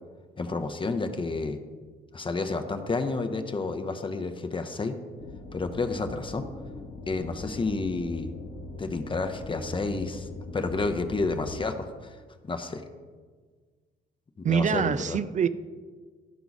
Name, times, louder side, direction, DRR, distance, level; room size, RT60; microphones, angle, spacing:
voice 1, 0.4-1.6 2.1-5.0 5.5-6.5 7.1-8.3 8.8-10.3 10.5-12.2 12.4-12.8 14.4-15.2, left 3 dB, 25° left, 0.7 m, -30 dB
sound 1, 5.2-11.6, left 2 dB, 80° left, 1.2 m, -41 dB
voice 2, 14.4-15.5, right 7 dB, 40° right, 0.4 m, -25 dB
11.5 x 4.6 x 4.0 m
cardioid pair, 90°, 20 cm